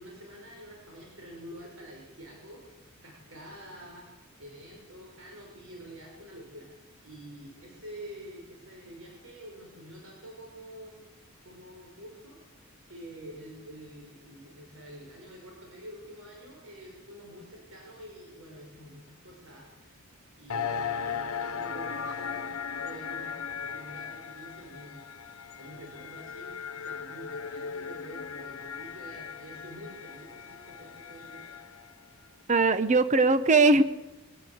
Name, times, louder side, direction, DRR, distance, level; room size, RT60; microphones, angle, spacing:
voice 1, 0.0-4.1 4.4-6.8 7.0-11.1 11.4-12.4 12.9-20.0 20.3-31.4, equal, 65° right, -1 dB, 6.1 m, -47 dB
sound 1, 20.5-31.9, left 6 dB, 85° left, 1.1 m, -37 dB
voice 2, 32.5-33.8, right 3 dB, 35° right, 11 dB, 1.0 m, -20 dB
24.0 x 17.5 x 8.0 m, 1.1 s
head